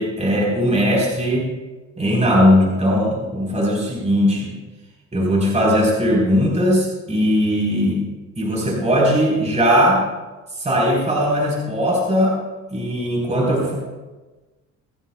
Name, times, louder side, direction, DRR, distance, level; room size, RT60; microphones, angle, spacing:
voice 1, 0.0-1.5 2.0-4.6 5.1-8.0 8.4-10.0 10.6-12.4 12.7-13.8, equal, 20° right, -3 dB, 4.6 m, -19 dB
26.0 x 10.0 x 2.4 m, 1.2 s
cardioid pair, 90°, 30 cm